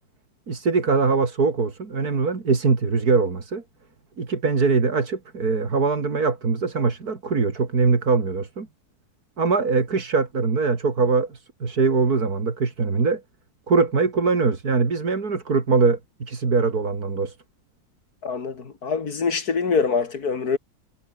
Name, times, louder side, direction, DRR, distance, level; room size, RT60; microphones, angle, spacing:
voice 1, 0.5-3.6 4.2-8.7 9.4-13.2 13.7-17.4, right 4 dB, 75° right, 3.4 m, -22 dB
voice 2, 18.2-20.6, left 5 dB, 75° left, 2.8 m, -24 dB
omnidirectional pair, 1.6 m